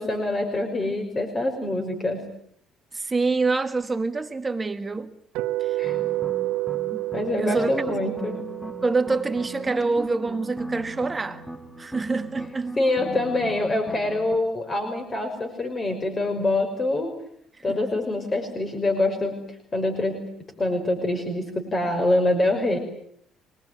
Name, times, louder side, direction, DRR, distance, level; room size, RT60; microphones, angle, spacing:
voice 1, 0.0-2.2 5.8-6.0 7.1-8.4 12.8-17.1 17.6-20.3 20.6-22.8, left 2 dB, 30° left, 5.8 m, -25 dB
voice 2, 2.9-5.1 5.6-5.8 6.9-7.0 7.3-8.1 8.8-11.5 11.8-12.8 17.5-17.8, right 3 dB, 20° right, 1.4 m, -26 dB
sound 1, 5.3-11.4, right 16 dB, 90° right, 1.5 m, -31 dB
sound 2, 5.8-14.4, equal, 5° left, 2.3 m, -39 dB
26.5 x 21.0 x 9.4 m
cardioid pair, 95°, 0 cm